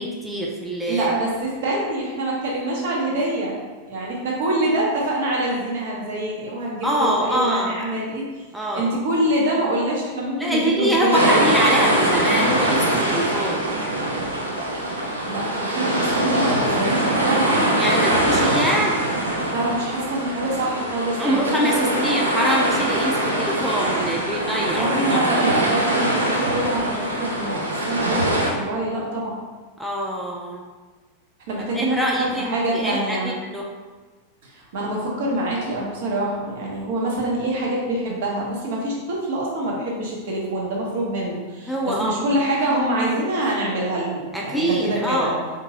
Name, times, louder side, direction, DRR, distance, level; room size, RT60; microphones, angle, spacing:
voice 1, 0.0-1.1 6.8-7.9 8.5-8.9 10.4-13.7 17.8-18.9 21.2-25.4 29.8-30.6 31.7-33.7 41.7-42.1 44.3-45.4, right 1 dB, 5° right, -3 dB, 0.4 m, -24 dB
voice 2, 0.9-3.6 3.9-8.4 8.7-11.5 15.3-17.7 19.5-21.7 24.6-29.4 31.5-33.4 34.4-45.3, right 1 dB, 55° right, -3 dB, 0.9 m, -25 dB
sound 1, 11.1-28.5, right 1 dB, 80° right, 0.5 m, -22 dB
3.6 x 2.6 x 2.8 m, 1.3 s
figure-of-eight pair, 90°, 0 cm